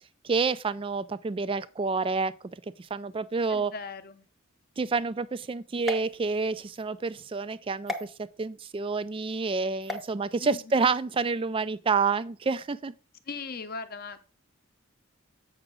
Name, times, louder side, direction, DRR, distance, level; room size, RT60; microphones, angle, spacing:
voice 1, 0.2-2.3 2.8-3.7 4.8-12.9, right 4 dB, 25° right, 0.3 m, -28 dB
voice 2, 3.5-4.3 10.4-10.9 13.2-14.2, left 4 dB, 45° left, 0.7 m, -39 dB
sound 1, 5.8-6.8 7.9-8.0 9.8-10.1, left 2 dB, ahead, 0.7 m, -36 dB
8.0 x 5.8 x 3.8 m
head